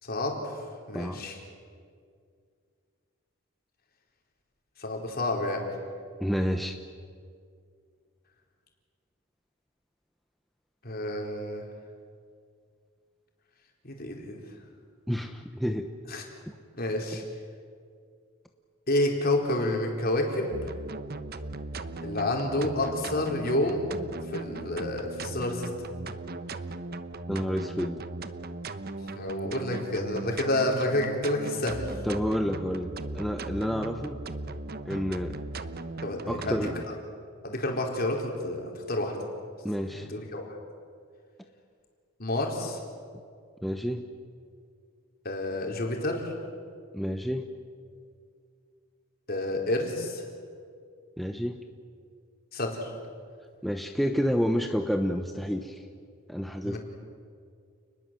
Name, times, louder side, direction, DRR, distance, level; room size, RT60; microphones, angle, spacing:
voice 1, 0.0-1.4 4.8-5.6 10.8-11.6 13.8-14.4 16.1-16.2 16.8-17.2 18.9-20.5 22.0-24.0 24.3-25.7 29.2-31.9 36.0-36.7 37.4-39.2 39.8-40.5 42.2-42.8 45.2-46.3 49.3-50.2 52.5-52.9 56.6-56.8, left 1 dB, 45° left, 1 dB, 4.3 m, -29 dB
voice 2, 6.2-6.8 15.1-15.9 16.5-16.6 27.3-28.0 32.0-34.2 34.8-35.4 36.3-36.8 39.6-40.1 43.6-44.0 46.9-47.5 51.2-51.6 53.6-55.8 56.3-56.8, equal, ahead, 4 dB, 0.9 m, -29 dB
sound 1, 20.5-36.8, right 2 dB, 50° right, 1.0 m, -38 dB
29.5 x 20.5 x 7.7 m, 2.2 s
head